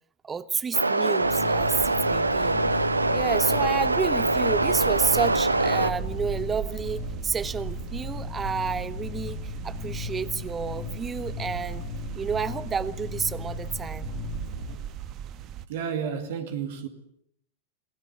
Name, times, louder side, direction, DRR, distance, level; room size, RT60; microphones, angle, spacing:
voice 1, 0.2-2.8 3.1-11.8 12.1-14.1, right 6 dB, 20° right, 1.0 m, -30 dB
sound 1, 0.7-5.9, right 2 dB, 80° right, 1.1 m, -24 dB
sound 2, 1.2-14.8, left 8 dB, 65° left, 4.1 m, -37 dB
sound 3, 1.6-15.7, right 10 dB, 35° right, 1.4 m, -38 dB
voice 2, 15.7-16.9, right 7 dB, 55° right, 2.4 m, -31 dB
28.5 x 19.5 x 8.5 m
figure-of-eight pair, 90°, 0 cm